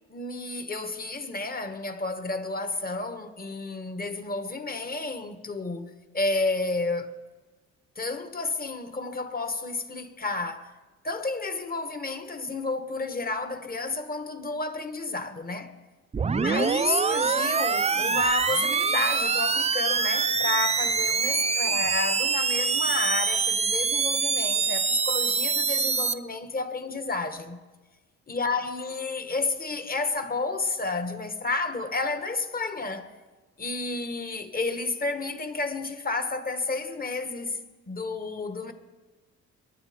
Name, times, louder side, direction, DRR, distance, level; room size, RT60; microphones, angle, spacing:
voice 1, 0.1-5.9 6.1-7.1 7.9-10.7 11.0-15.7 16.3-27.6 28.3-33.1 33.6-38.7, left 3 dB, 30° left, 1.6 m, -31 dB
sound 1, 16.1-26.1, right 5 dB, 20° right, 0.5 m, -25 dB
22.0 x 9.9 x 5.2 m
cardioid pair, 90°, 30 cm